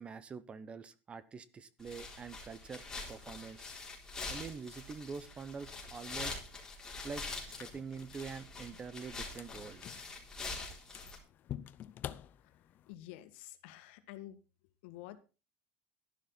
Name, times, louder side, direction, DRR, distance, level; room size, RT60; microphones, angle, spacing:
voice 1, 0.0-2.8 3.1-3.7 4.3-6.4 7.0-9.8, right 5 dB, 20° right, 16 dB, 0.9 m, -45 dB
sound 1, 1.8-11.2, left 3 dB, 10° left, 3.9 m, -45 dB
sound 2, 7.4-12.9, left 11 dB, 35° left, 0.7 m, -49 dB
voice 2, 12.9-14.4 14.8-15.2, left 14 dB, 80° left, 10 dB, 1.9 m, -49 dB
12.5 x 11.5 x 4.0 m, 0.31 s
cardioid pair, 170°, 6 cm